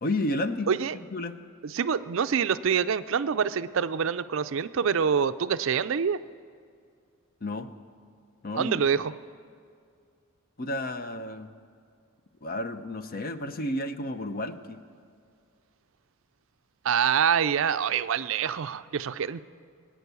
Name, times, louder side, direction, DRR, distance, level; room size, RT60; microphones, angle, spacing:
voice 1, 0.0-0.7 0.9-1.4 7.4-7.7 8.4-8.8 10.6-11.5 12.4-14.8, left 1 dB, 40° left, 10 dB, 0.7 m, -31 dB
voice 2, 1.6-6.2 8.5-9.1 16.8-19.4, right 7 dB, 60° right, 13 dB, 0.4 m, -26 dB
22.0 x 9.1 x 6.9 m, 2.2 s
head